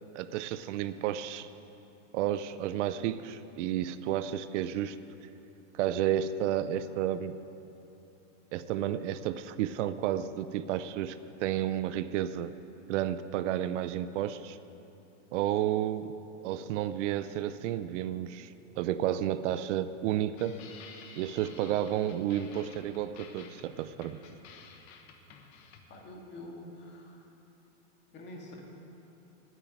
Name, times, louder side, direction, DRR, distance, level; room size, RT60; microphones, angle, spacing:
voice 1, 0.1-1.5 2.1-5.0 5.7-7.4 8.5-12.5 12.9-14.6 15.3-16.1 16.4-20.6 21.2-24.2, right 11 dB, 75° right, 13 dB, 0.6 m, -31 dB
sound 1, 20.3-26.1, left 5 dB, 65° left, 1.4 m, -52 dB
voice 2, 25.9-27.3 28.1-28.6, left 1 dB, 30° left, 0 dB, 2.0 m, -46 dB
9.3 x 8.6 x 9.2 m, 2.9 s
supercardioid pair, 150°, 37 cm